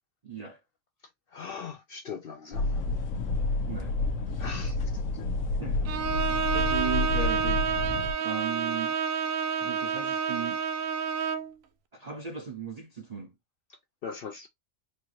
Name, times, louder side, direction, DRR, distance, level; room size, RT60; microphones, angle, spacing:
voice 1, 0.2-0.6 3.6-4.0 5.6-6.1 6.5-7.6 8.2-9.0 9.6-10.6 11.9-13.3, right 7 dB, 45° right, 0.5 m, -36 dB
voice 2, 1.3-2.9 4.4-5.1 14.0-14.5, left 6 dB, 65° left, 0.6 m, -40 dB
sound 1, 2.5-8.1, left 2 dB, 90° left, 1.2 m, -29 dB
Bowed string instrument, 5.9-11.5, right 6 dB, 85° right, 1.0 m, -29 dB
4.3 x 2.5 x 3.0 m
omnidirectional pair, 1.4 m